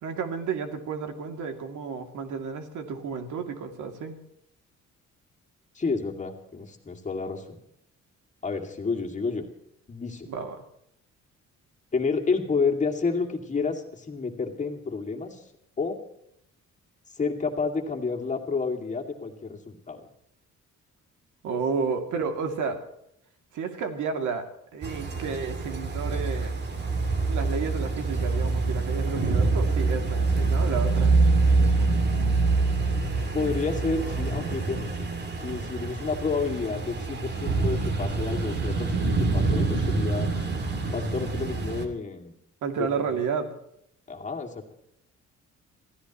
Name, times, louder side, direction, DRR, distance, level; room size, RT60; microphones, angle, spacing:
voice 1, 0.0-4.2 10.3-10.6 21.4-22.8 23.5-24.5 24.7-26.6 27.3-31.2 42.6-43.5, right 5 dB, 85° right, 5 dB, 2.6 m, -31 dB
voice 2, 5.7-7.6 8.4-9.5 9.9-10.3 11.9-15.4 15.8-16.0 17.1-20.0 33.3-35.1 35.4-40.3 40.9-42.3 42.8-42.9 44.1-44.7, left 4 dB, 25° left, 1 dB, 2.4 m, -30 dB
sound 1, 24.8-41.9, right 3 dB, 35° right, 2.5 m, -26 dB
27.5 x 16.0 x 3.1 m, 0.75 s
cardioid pair, 150°, 30 cm